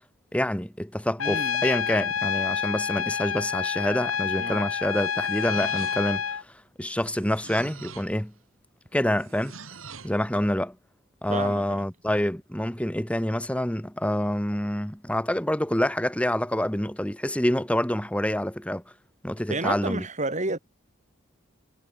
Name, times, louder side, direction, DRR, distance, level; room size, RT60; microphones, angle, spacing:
voice 1, 0.3-6.4 6.8-8.3 8.9-9.5 10.0-10.8 11.2-18.8 19.2-20.0, left 1 dB, 5° left, 1.7 m, -27 dB
Trumpet, 1.2-6.4, left 7 dB, 75° left, 1.0 m, -28 dB
voice 2, 1.2-1.7 4.4-4.7 11.3-11.8 19.5-20.6, right 2 dB, 35° right, 3.6 m, -31 dB
sound 1, 4.7-6.3 7.0-8.2 9.2-10.2, right 5 dB, 75° right, 6.3 m, -45 dB
head